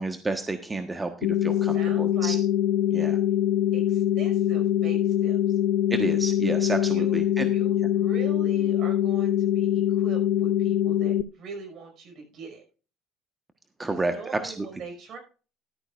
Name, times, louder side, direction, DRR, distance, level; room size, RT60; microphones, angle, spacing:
voice 1, 0.0-2.4 2.9-3.2 5.9-7.5 13.8-14.7, right 2 dB, 20° right, 6 dB, 1.3 m, -30 dB
sound 1, 1.2-11.2, left 11 dB, 70° left, 0.6 m, -23 dB
voice 2, 1.5-2.4 2.9-3.2 3.7-5.6 6.9-12.6 13.9-15.2, right 5 dB, 55° right, 3 dB, 5.5 m, -43 dB
14.0 x 12.0 x 2.5 m, 0.36 s
hypercardioid pair, 60°, 0 cm